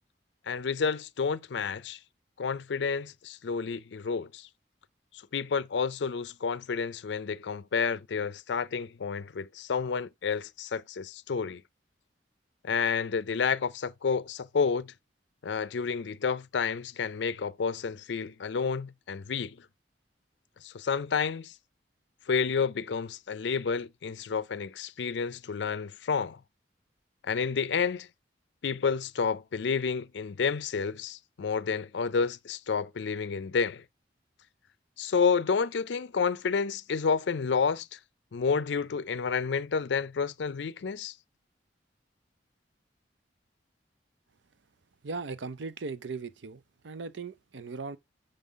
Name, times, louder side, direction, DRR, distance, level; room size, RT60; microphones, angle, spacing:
voice 1, 0.5-2.0 2.4-4.5 5.3-11.6 12.6-14.9 15.4-19.6 20.6-21.5 22.3-26.4 27.2-28.1 28.6-33.8 35.0-38.0 38.3-41.1, left 5 dB, 70° left, 0.5 m, -30 dB
voice 2, 45.0-48.0, right 4 dB, 80° right, 0.6 m, -38 dB
6.8 x 5.5 x 3.6 m
head